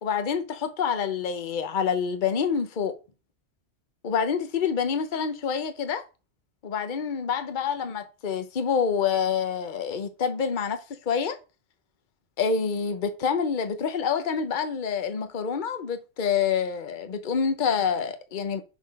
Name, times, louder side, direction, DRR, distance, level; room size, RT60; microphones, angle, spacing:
voice 1, 0.0-3.0 4.0-6.0 6.6-11.4 12.4-18.6, left 6 dB, 45° left, 1.0 m, -27 dB
6.1 x 4.6 x 5.2 m
omnidirectional pair, 1.2 m